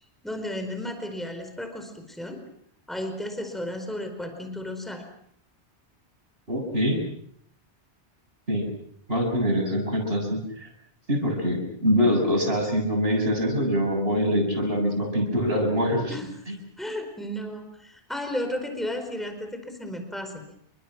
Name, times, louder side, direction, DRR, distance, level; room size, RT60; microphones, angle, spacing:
voice 1, 0.2-2.4 2.9-5.1 16.1-16.3 16.8-20.4, left 1 dB, ahead, 6 dB, 4.6 m, -33 dB
voice 2, 6.5-7.0 8.5-8.7 9.1-10.7 11.1-16.2 16.5-16.6, equal, 55° right, 3 dB, 7.4 m, -24 dB
29.5 x 24.5 x 6.1 m, 0.67 s
omnidirectional pair, 1.2 m